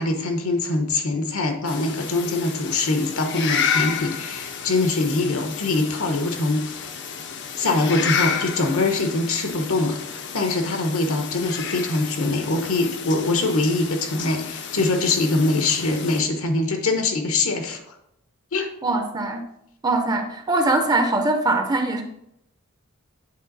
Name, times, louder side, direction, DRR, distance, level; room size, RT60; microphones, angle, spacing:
voice 1, 0.0-6.9 7.6-17.8 18.5-18.7, left 2 dB, 70° left, 5 dB, 1.0 m, -23 dB
sound 1, 1.7-16.2, left 7 dB, 55° left, 0.6 m, -31 dB
voice 2, 18.8-19.5 19.8-22.0, right 2 dB, 20° right, 5 dB, 0.6 m, -22 dB
8.6 x 3.6 x 4.0 m, 0.77 s
head